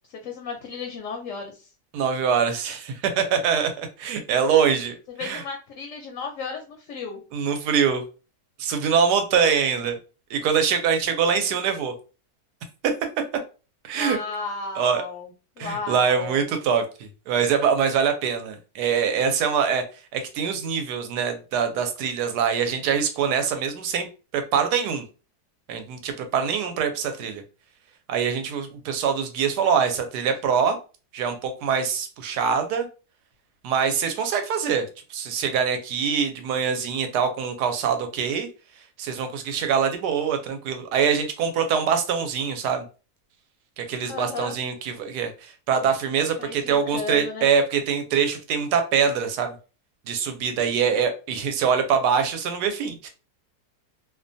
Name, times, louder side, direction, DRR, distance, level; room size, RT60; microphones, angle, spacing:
voice 1, 0.1-1.7 5.2-7.2 13.9-15.3 15.6-16.5 44.1-44.5 46.4-47.5 50.8-50.9, left 4 dB, 65° left, 2 dB, 0.8 m, -34 dB
voice 2, 1.9-5.4 7.3-8.0 8.6-10.0 10.3-11.9 13.8-14.2 14.8-15.0 15.6-19.8 20.1-24.1 24.3-25.0 25.7-27.4 28.1-30.8 31.1-32.9 33.6-38.5 39.0-42.8 43.8-49.5 50.1-53.1, right 7 dB, 90° right, 7 dB, 1.2 m, -24 dB
2.7 x 2.2 x 2.5 m, 0.33 s
omnidirectional pair, 1.7 m